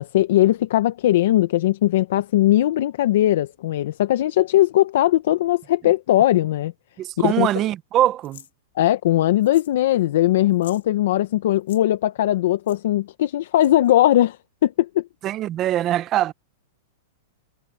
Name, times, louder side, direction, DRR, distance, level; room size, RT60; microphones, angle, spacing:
voice 1, 0.0-6.7 7.2-7.5 8.8-15.0, left 14 dB, 55° left, 0.7 m, -19 dB
voice 2, 7.0-8.4 15.2-16.3, right 13 dB, 20° right, 0.6 m, -22 dB
sound 1, 8.2-8.5 9.4-9.8 10.0-10.1 10.5-10.8 11.5-11.8 12.7-12.8 13.6-13.9, left 11 dB, 85° left, 2.1 m, -46 dB
supercardioid pair, 180°, 0 cm